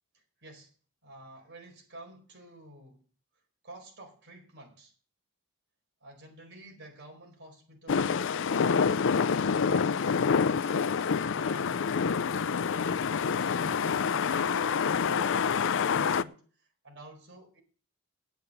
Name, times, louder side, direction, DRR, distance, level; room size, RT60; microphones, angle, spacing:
voice 1, 0.1-0.7 1.0-3.0 3.6-4.9 6.0-8.2 8.5-11.8 12.3-17.6, right 1 dB, 55° right, 2 dB, 4.6 m, -50 dB
sound 1, 7.9-16.2, left 6 dB, 60° left, 0.5 m, -27 dB
8.8 x 8.1 x 8.7 m, 0.40 s
head